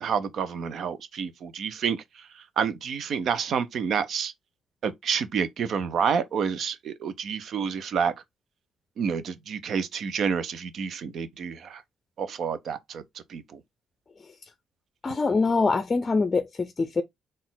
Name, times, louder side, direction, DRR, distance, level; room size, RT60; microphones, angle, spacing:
voice 1, 0.0-4.3 4.8-8.1 9.0-11.8 12.2-13.6, right 6 dB, 65° right, 0.7 m, -29 dB
voice 2, 15.0-17.0, left 4 dB, 30° left, 0.5 m, -24 dB
4.1 x 2.5 x 3.9 m
cardioid pair, 90°, 0 cm